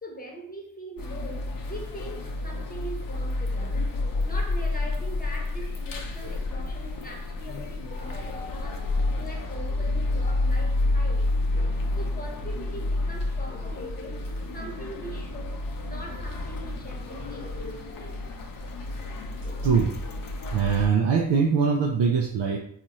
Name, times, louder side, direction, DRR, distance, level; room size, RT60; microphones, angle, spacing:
voice 1, 0.0-18.2 19.4-19.7, equal, 20° left, 1.0 m, -42 dB
sound 1, 1.0-20.9, left 2 dB, 50° left, 0.7 m, -30 dB
voice 2, 19.6-20.0 20.5-22.6, right 6 dB, 65° right, 0.6 m, -22 dB
4.1 x 2.5 x 2.9 m
cardioid pair, 70°, 46 cm